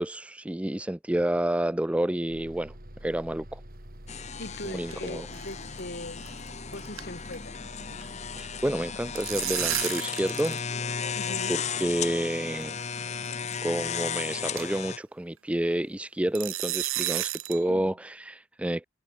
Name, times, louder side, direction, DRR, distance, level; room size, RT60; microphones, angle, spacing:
voice 1, 0.0-2.7 3.0-3.6 4.6-5.3 8.3-10.6 11.2-12.8 13.6-18.9, right 1 dB, 5° right, 0.4 m, -29 dB
Bus, 2.3-9.8, equal, 45° right, 6.3 m, -46 dB
sound 1, 4.1-15.0, left 7 dB, 35° left, 0.7 m, -35 dB
sound 2, 4.3-5.1 5.3-5.5 5.8-5.9 6.3-6.5 6.7-7.6 7.8-8.0 8.9-10.6 10.9-11.0 11.9-12.0 12.8-13.0 13.5-13.6 14.0-14.1 14.6-14.8 16.3-17.6, right 15 dB, 75° right, 1.0 m, -32 dB
voice 2, 4.4-6.4 6.7-7.5 11.1-11.6 17.6-18.0, left 1 dB, 50° left, 5.6 m, -40 dB
head